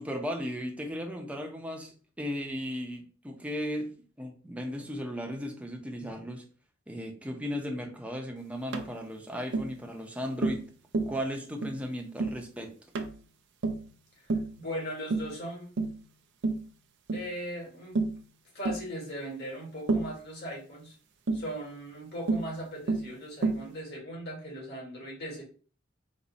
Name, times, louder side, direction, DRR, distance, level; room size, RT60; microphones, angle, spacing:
voice 1, 0.0-3.9 4.2-6.4 6.9-10.6 11.1-12.8, equal, 5° right, 2 dB, 0.6 m, -36 dB
Tap, 8.7-8.9 9.5-9.7 10.4-10.7 10.9-11.2 11.6-11.8 12.2-12.4 13.0-13.2 13.6-13.9 14.3-14.5 15.1-15.4 15.8-16.0 16.4-16.7 17.1-17.3 18.0-18.2 18.7-18.9 19.9-20.2 21.3-21.5 22.3-22.5 22.9-23.1 23.4-23.7, right 3 dB, 60° right, 0.5 m, -29 dB
voice 2, 14.3-15.8 17.1-18.0 18.5-20.9 21.3-25.4, equal, 55° left, -2 dB, 1.8 m, -39 dB
4.1 x 2.6 x 4.0 m, 0.39 s
head